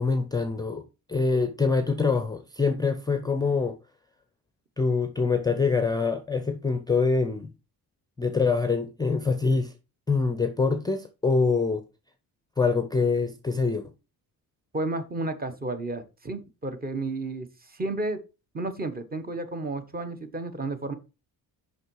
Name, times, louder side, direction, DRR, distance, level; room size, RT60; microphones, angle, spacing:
voice 1, 0.0-3.8 4.8-7.5 8.2-9.7 10.1-11.8 12.6-13.9, left 4 dB, 10° left, 0.5 m, -25 dB
voice 2, 14.7-18.2 18.5-20.9, right 2 dB, 25° right, 1.0 m, -32 dB
6.5 x 5.5 x 4.6 m
cardioid pair, 150°, 38 cm